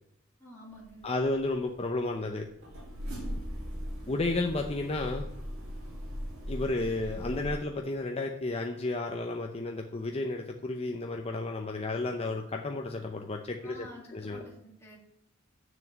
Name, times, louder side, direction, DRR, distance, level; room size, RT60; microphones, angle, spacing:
voice 1, 0.4-1.1 13.6-15.0, left 1 dB, 15° left, -6 dB, 2.7 m, -49 dB
sound 1, 0.7-7.6, equal, 90° right, 3.5 m, -39 dB
voice 2, 1.0-2.5 4.1-5.2 6.5-13.9 14.1-14.4, left 2 dB, 30° left, 3 dB, 0.7 m, -32 dB
7.1 x 6.5 x 7.5 m, 0.79 s
head